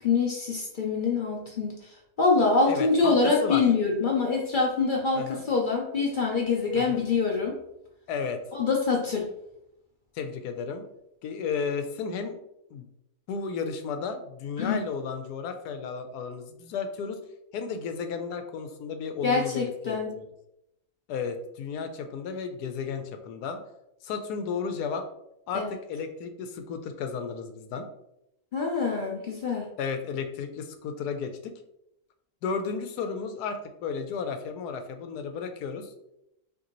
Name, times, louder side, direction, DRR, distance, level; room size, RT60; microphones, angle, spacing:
voice 1, 0.0-1.7 2.2-7.6 8.5-9.3 14.6-14.8 19.2-20.2 25.5-25.7 28.5-29.7, left 4 dB, 60° left, -1 dB, 0.5 m, -25 dB
voice 2, 2.7-3.6 5.1-5.4 6.7-7.0 8.1-8.4 10.1-10.8 11.2-12.4 12.7-12.9 13.3-17.2 17.5-20.3 21.1-23.6 24.0-25.1 25.5-27.9 29.8-31.5 32.4-35.9, left 5 dB, 90° left, 7 dB, 1.1 m, -33 dB
5.2 x 2.7 x 3.0 m, 0.82 s
omnidirectional pair, 1.6 m